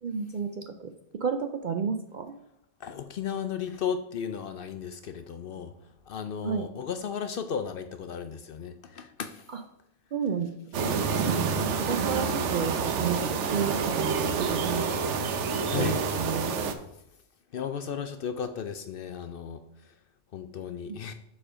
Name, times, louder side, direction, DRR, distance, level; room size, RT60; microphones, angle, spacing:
voice 1, 0.0-0.9 1.2-2.3 6.4-6.7 9.5-9.6 10.1-15.3 15.7-16.8 20.9-21.0, right 6 dB, 60° right, 7 dB, 0.5 m, -32 dB
voice 2, 2.8-5.7 6.1-9.5 15.7-16.0 17.5-19.6 20.3-21.1, left 7 dB, 60° left, 9 dB, 0.6 m, -35 dB
sound 1, 10.7-16.7, right 5 dB, 75° right, 1.0 m, -28 dB
6.9 x 4.3 x 4.9 m, 0.83 s
omnidirectional pair, 1.2 m